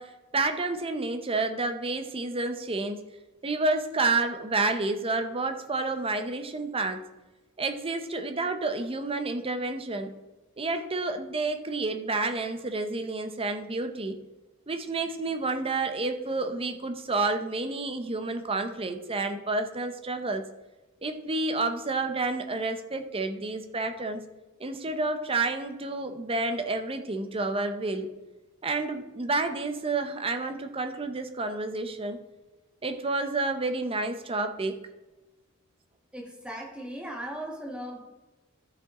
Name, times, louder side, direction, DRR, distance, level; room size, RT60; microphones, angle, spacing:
voice 1, 0.0-3.0 3.4-7.0 7.6-10.1 10.6-14.2 14.7-20.4 21.0-24.2 24.6-28.1 28.6-32.2 32.8-34.8, right 3 dB, 25° right, 7 dB, 0.7 m, -30 dB
voice 2, 36.1-38.0, right 1 dB, 5° right, -1 dB, 1.6 m, -37 dB
13.0 x 5.4 x 3.8 m, 1.1 s
head